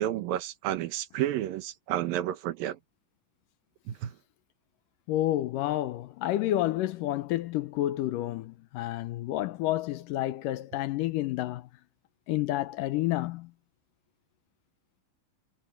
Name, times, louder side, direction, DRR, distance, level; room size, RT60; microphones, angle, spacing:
voice 1, 0.0-2.8 3.9-4.2, right 12 dB, 75° right, 2.8 m, -31 dB
voice 2, 5.1-11.7 12.3-13.5, left 14 dB, 75° left, 2.2 m, -30 dB
omnidirectional pair, 4.2 m